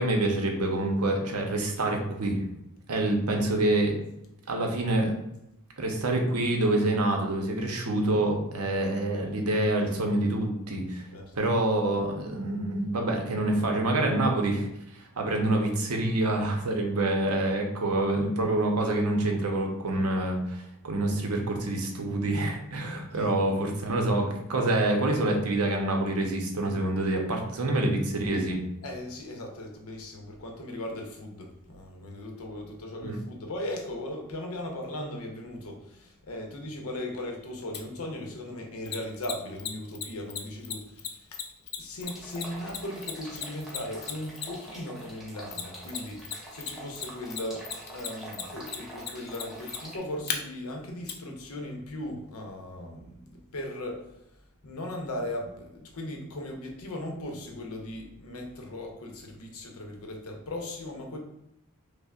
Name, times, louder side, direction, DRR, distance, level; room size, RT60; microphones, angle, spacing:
voice 1, 0.0-2.4 2.9-3.9 4.5-5.2 5.8-11.1 11.3-14.7 15.0-24.2 24.5-28.6 33.0-33.2, right 2 dB, 80° right, 2 dB, 0.7 m, -26 dB
voice 2, 28.8-41.4 41.8-54.2 54.6-61.2, left 1 dB, 75° left, 2 dB, 0.8 m, -38 dB
Mechanisms, 37.7-37.8 38.9-44.7 45.5-46.3 46.6-50.4 51.1-51.2, left 8 dB, 45° left, 0.4 m, -34 dB
sound 1, 42.0-50.0, right 1 dB, ahead, 0.8 m, -45 dB
5.4 x 2.1 x 2.4 m, 0.82 s
head